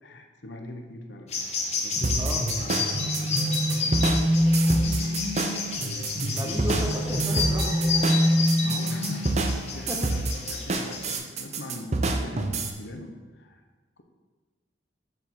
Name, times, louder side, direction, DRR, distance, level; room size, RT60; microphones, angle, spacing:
voice 1, 0.0-5.2 5.8-6.9 8.6-13.6 14.0-14.1, left 1 dB, 70° left, 4 dB, 0.9 m, -41 dB
sound 1, 1.3-11.2, left 4 dB, 35° left, 1.0 m, -31 dB
sound 2, 2.0-12.7, right 3 dB, 35° right, 0.6 m, -28 dB
sound 3, 2.0-9.6, equal, 75° right, 1.5 m, -26 dB
voice 2, 6.3-8.1 9.7-10.1, left 1 dB, 10° right, 1 dB, 0.9 m, -34 dB
6.4 x 5.4 x 6.2 m, 1.3 s
head